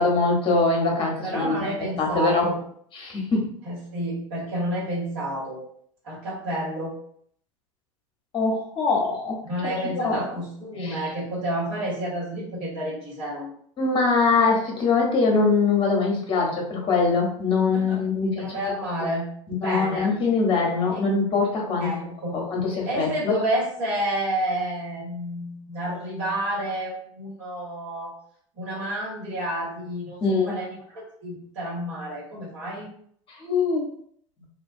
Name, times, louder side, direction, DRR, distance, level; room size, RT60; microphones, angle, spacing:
voice 1, 0.0-1.7 2.0-2.5 3.0-3.4 8.3-9.4 10.0-10.2 10.8-11.1 13.8-18.5 19.5-21.9 22.3-23.3 30.2-30.5 33.4-33.9, left 4 dB, 30° left, 0 dB, 0.9 m, -23 dB
voice 2, 1.2-2.5 3.6-5.6 6.0-6.9 9.4-13.5 17.7-18.0 18.4-19.3 19.5-20.1 20.9-21.0 21.8-22.4 22.9-28.1 28.5-32.9, right 1 dB, 60° right, -6 dB, 1.5 m, -30 dB
2.5 x 2.2 x 2.6 m, 0.62 s
figure-of-eight pair, 75°, 16 cm